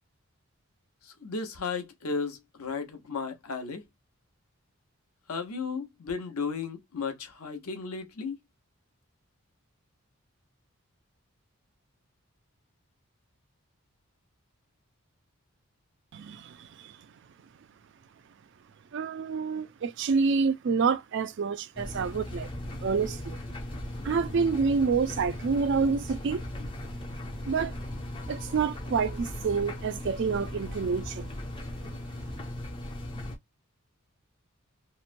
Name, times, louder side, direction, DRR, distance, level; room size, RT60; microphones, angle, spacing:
voice 1, 1.0-3.8 5.3-8.4, left 5 dB, 85° left, 0.8 m, -34 dB
voice 2, 16.1-17.0 18.9-22.5 22.8-23.4 24.0-26.4 27.5-27.7 28.3-31.3, right 5 dB, 55° right, 0.3 m, -28 dB
sound 1, 21.8-33.4, left 1 dB, 25° left, 0.4 m, -38 dB
2.9 x 2.1 x 2.5 m
head